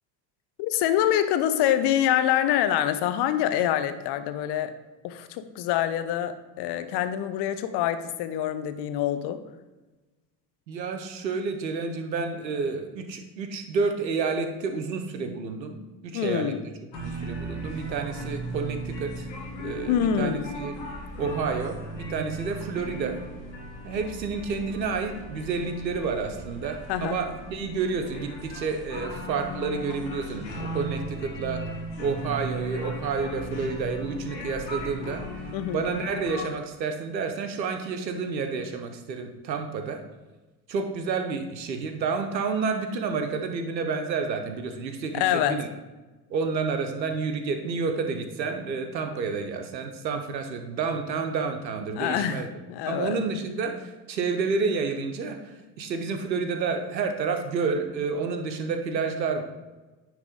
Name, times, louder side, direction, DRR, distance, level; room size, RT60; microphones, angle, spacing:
voice 1, 0.6-4.7 5.0-9.4 16.1-16.6 19.9-20.5 26.9-27.2 35.5-35.8 45.1-45.6 52.0-53.2, left 10 dB, 55° left, 11 dB, 0.8 m, -25 dB
voice 2, 10.7-15.8 16.0-16.5 17.0-19.3 19.6-20.7 21.2-23.2 23.8-31.6 32.0-35.2 35.7-40.0 40.7-45.7 46.3-52.5 52.9-55.4 55.8-59.4, right 4 dB, 90° right, 6 dB, 0.8 m, -30 dB
sound 1, 16.9-36.5, right 1 dB, 90° left, 1.3 m, -37 dB
9.6 x 3.3 x 5.1 m, 1.2 s
hypercardioid pair, 60°, 50 cm